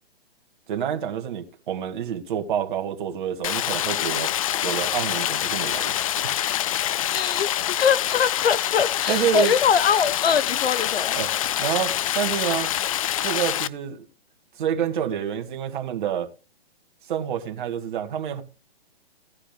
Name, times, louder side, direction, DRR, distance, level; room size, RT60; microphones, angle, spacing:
voice 1, 0.7-4.3 4.6-6.0 9.1-9.5 11.1-11.3 11.6-12.7 13.2-14.0 14.6-16.3 17.1-18.4, right 9 dB, 50° right, 2.2 m, -27 dB
Stream, 3.4-13.7, left 12 dB, 35° left, 0.4 m, -26 dB
voice 2, 7.1-11.2, left 7 dB, 70° left, 1.2 m, -23 dB
17.5 x 10.0 x 2.3 m
hypercardioid pair, 140°, 31 cm